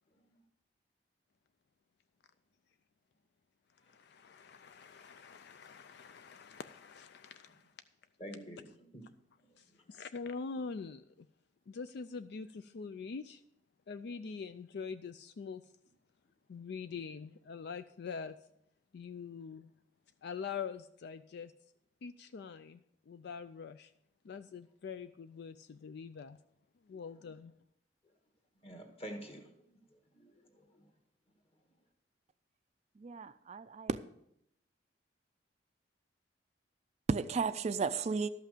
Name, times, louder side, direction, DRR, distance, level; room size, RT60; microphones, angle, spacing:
voice 1, 3.8-7.7 9.6-11.3 11.7-13.4 13.9-15.7 16.5-18.4 18.9-19.7 20.2-21.5 22.0-22.8 23.1-23.9 24.2-26.4 26.8-27.5, left 5 dB, 60° left, 0.4 m, -44 dB
voice 2, 8.2-8.7 8.9-9.0 28.6-29.5 30.1-30.8, equal, 35° left, 1.6 m, -47 dB
voice 3, 33.0-34.0 37.1-38.3, right 4 dB, 35° right, 0.3 m, -33 dB
12.5 x 5.8 x 6.6 m
head